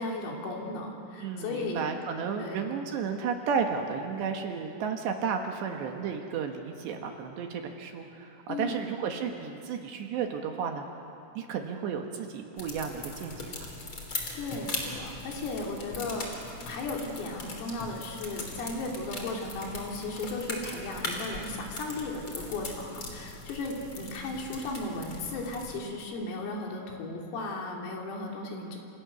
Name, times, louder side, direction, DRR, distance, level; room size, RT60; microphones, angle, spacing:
voice 1, 0.0-1.8 2.4-2.7 8.5-8.8 14.3-16.3 16.7-28.8, left 2 dB, 80° left, 0 dB, 5.8 m, -35 dB
voice 2, 1.2-10.8 11.4-13.7, right 6 dB, 65° right, 4 dB, 3.2 m, -33 dB
sound 1, 12.6-25.8, left 2 dB, 30° left, 3.5 m, -40 dB
28.5 x 27.0 x 6.9 m, 2.6 s
omnidirectional pair, 5.9 m